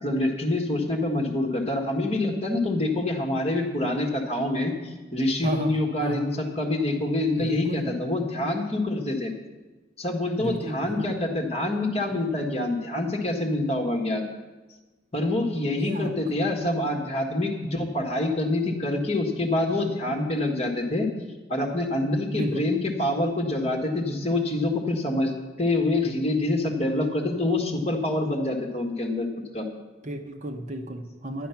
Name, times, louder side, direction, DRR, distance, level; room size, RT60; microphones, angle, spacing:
voice 1, 0.0-9.3 10.0-14.2 15.1-21.1 21.5-29.3 29.5-29.7, left 2 dB, 35° left, 1 dB, 1.6 m, -26 dB
voice 2, 5.4-5.7 6.0-6.3 7.4-7.9 10.4-11.1 15.8-16.1 22.3-22.7 30.0-31.5, right 1 dB, 40° right, 4 dB, 0.9 m, -32 dB
11.0 x 10.5 x 5.8 m, 1.2 s
head